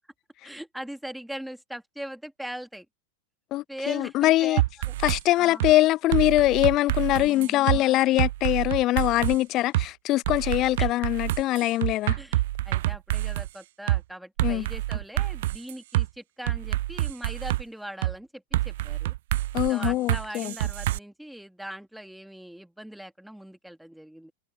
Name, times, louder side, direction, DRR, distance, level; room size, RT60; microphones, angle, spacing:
voice 1, 0.4-2.9 3.7-4.6 4.9-5.0 5.4-5.6 7.1-7.9 10.8-10.9 12.2-19.1 19.7-24.3, right 1 dB, ahead, 2.5 m, -40 dB
voice 2, 3.5-4.6 5.0-12.2 14.4-14.6 19.5-20.5, left 16 dB, 35° left, 0.5 m, -23 dB
sound 1, 4.6-5.2 5.6-5.7 6.1-7.8 8.2-9.4 9.7-9.9 10.2-13.5 13.9-14.0 14.4-16.1 16.5-17.6 18.0-18.1 18.5-21.0, right 16 dB, 55° right, 0.8 m, -27 dB
figure-of-eight pair, 90°, 0 cm